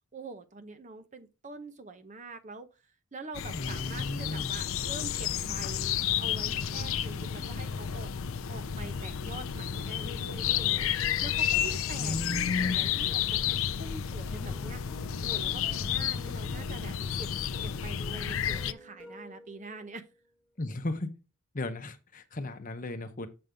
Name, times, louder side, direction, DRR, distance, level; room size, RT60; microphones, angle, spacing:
voice 1, 0.1-2.7 3.1-8.1 8.5-15.0 15.2-17.3 17.6-20.1, right 3 dB, 35° right, 0.8 m, -45 dB
sound 1, 3.3-18.7, left 9 dB, 65° left, 0.5 m, -31 dB
voice 2, 3.5-4.5 12.0-12.8 20.6-21.1 21.5-23.3, left 2 dB, 35° left, 0.8 m, -34 dB
sound 2, 3.5-20.2, right 2 dB, 5° right, 3.8 m, -53 dB
7.8 x 5.4 x 3.4 m
head